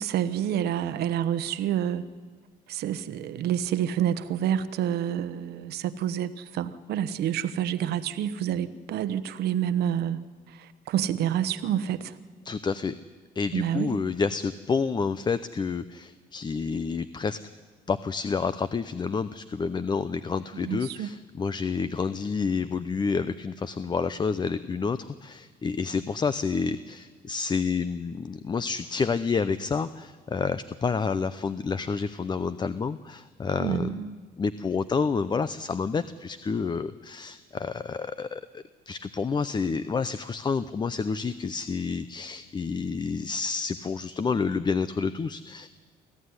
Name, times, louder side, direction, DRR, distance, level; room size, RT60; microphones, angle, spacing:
voice 1, 0.0-2.0 2.7-10.2 10.5-12.2 13.5-14.0 20.6-21.1 33.6-34.2, right 10 dB, 70° right, 13 dB, 1.1 m, -28 dB
voice 2, 12.4-13.0 13.3-17.4 17.9-33.9 34.4-45.7, left 5 dB, 25° left, 14 dB, 0.7 m, -29 dB
25.0 x 15.0 x 9.7 m, 1.5 s
cardioid pair, 110°, 17 cm